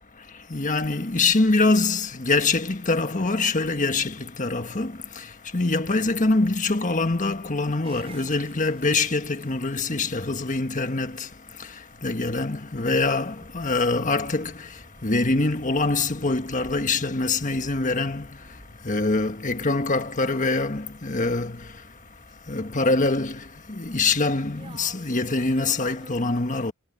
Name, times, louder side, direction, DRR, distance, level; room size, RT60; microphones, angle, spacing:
voice 1, 0.1-26.7, left 3 dB, 35° left, 1.5 m, -25 dB
sound 1, 7.8-26.1, right 2 dB, 25° right, 4.7 m, -52 dB
head